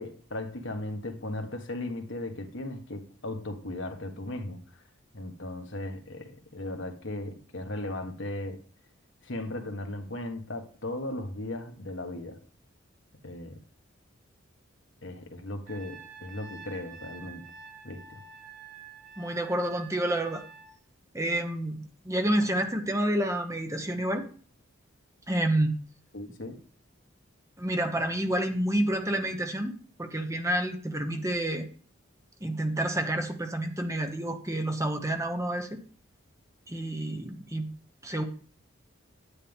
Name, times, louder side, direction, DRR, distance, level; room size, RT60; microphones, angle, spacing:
voice 1, 0.0-4.6 5.1-8.6 9.2-12.4 13.2-13.6 15.0-17.5 17.8-18.2 26.1-26.6, left 1 dB, 65° left, 1.6 m, -37 dB
Trumpet, 15.7-20.7, right 6 dB, 75° right, 5.8 m, -48 dB
voice 2, 19.2-20.4 21.1-24.3 25.3-25.8 27.6-31.7 32.4-35.8 36.7-37.7 38.0-38.2, right 1 dB, 15° right, 1.0 m, -29 dB
10.0 x 10.0 x 3.6 m
head